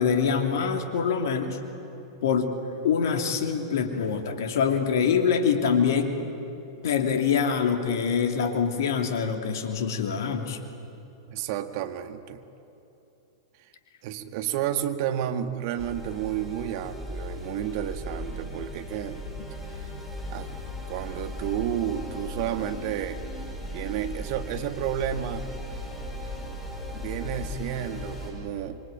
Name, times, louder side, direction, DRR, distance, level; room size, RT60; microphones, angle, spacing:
voice 1, 0.0-1.6 2.2-2.5 2.8-6.2 6.8-10.6, left 6 dB, 65° left, 5 dB, 2.8 m, -25 dB
voice 2, 11.3-12.4 14.0-19.2 20.3-20.6 20.9-23.2 23.7-25.5 26.9-28.8, right 10 dB, 55° right, 9 dB, 1.8 m, -31 dB
sound 1, 15.8-28.3, left 1 dB, ahead, 7.3 m, -37 dB
26.0 x 23.5 x 9.1 m, 2.9 s
hypercardioid pair, 100°, 2 cm